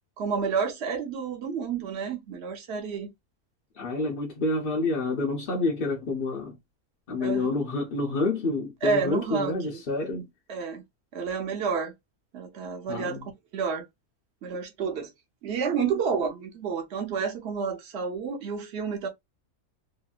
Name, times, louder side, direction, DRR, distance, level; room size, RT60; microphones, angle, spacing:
voice 1, 0.2-3.1 7.2-7.5 8.8-9.8 10.5-10.8 11.1-11.9 12.3-13.9 14.4-15.1 15.4-19.1, right 5 dB, 55° right, 0.9 m, -30 dB
voice 2, 3.8-6.6 7.1-10.3 12.9-13.2, left 2 dB, 50° left, 0.7 m, -28 dB
2.9 x 2.5 x 2.3 m
omnidirectional pair, 1.5 m